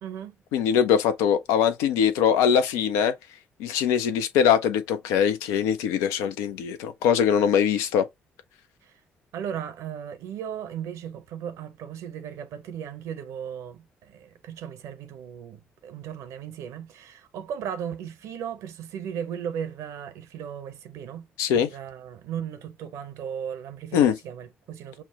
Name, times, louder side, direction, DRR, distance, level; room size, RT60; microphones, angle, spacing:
voice 1, 0.0-0.4 8.8-8.9 9.3-25.0, right 8 dB, 65° right, 0.6 m, -36 dB
voice 2, 0.5-3.1 3.6-8.1 21.4-21.7 23.9-24.2, left 8 dB, 70° left, 0.3 m, -22 dB
5.7 x 2.0 x 2.8 m
figure-of-eight pair, 40°, 6 cm